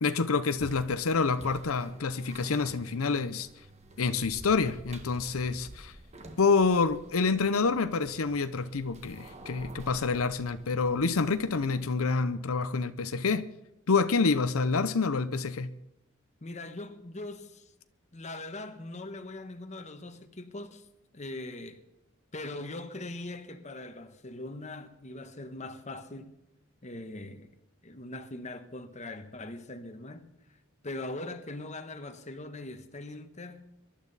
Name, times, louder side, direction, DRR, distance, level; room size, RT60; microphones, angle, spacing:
voice 1, 0.0-3.5 4.0-5.9 6.4-13.5 13.9-15.7, left 4 dB, 85° left, 0.7 m, -27 dB
sound 1, 0.6-12.0, right 1 dB, 30° right, 1.4 m, -50 dB
voice 2, 16.4-17.7 18.1-20.9 21.1-21.8 22.3-26.4 26.8-27.5 27.8-30.3 30.8-33.7, left 2 dB, 35° left, 1.2 m, -41 dB
23.0 x 12.0 x 4.1 m
head